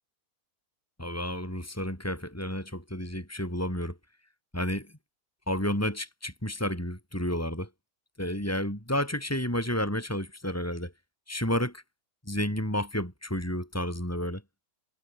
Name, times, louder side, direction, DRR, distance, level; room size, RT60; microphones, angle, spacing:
voice 1, 1.0-4.0 4.5-4.9 5.5-7.7 8.2-10.9 11.3-11.8 12.3-14.4, left 1 dB, 10° left, 7.1 m, -31 dB
omnidirectional pair, 1.6 m